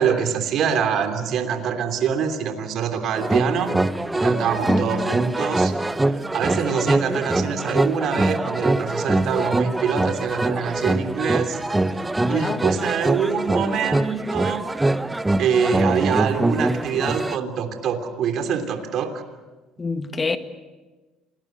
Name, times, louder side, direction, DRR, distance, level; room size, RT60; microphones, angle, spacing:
voice 1, 0.0-3.7 4.1-5.7 6.3-11.6 12.0-14.6 15.4-19.2, right 7 dB, 60° right, 3.2 m, -25 dB
sound 1, 3.2-17.4, right 2 dB, 10° right, 1.0 m, -23 dB
voice 2, 4.7-5.1 12.2-12.7 19.8-20.4, left 4 dB, 25° left, 1.8 m, -27 dB
27.5 x 19.5 x 8.1 m
supercardioid pair, 85°, 0 cm